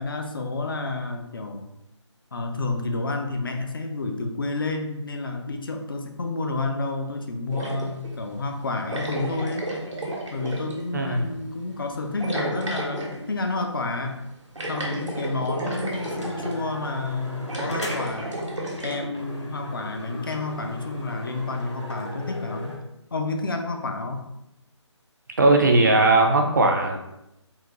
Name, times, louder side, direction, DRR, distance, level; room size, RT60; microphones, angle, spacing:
voice 1, 0.0-1.7 2.3-9.7 10.3-14.1 14.7-18.4 18.8-22.8 23.1-24.2, left 3 dB, 45° left, 4 dB, 0.4 m, -30 dB
sound 1, 7.5-8.1 8.9-10.8 12.2-13.2 14.5-16.6 17.4-19.1, right 1 dB, 80° right, 0.9 m, -32 dB
voice 2, 10.9-11.3 25.4-27.0, right 2 dB, 40° right, 2 dB, 0.4 m, -18 dB
sound 2, 15.2-15.3 15.7-18.3 18.7-18.8 19.1-22.8, left 1 dB, 70° left, 0.8 m, -37 dB
3.7 x 2.2 x 2.8 m, 0.86 s
figure-of-eight pair, 150°, 16 cm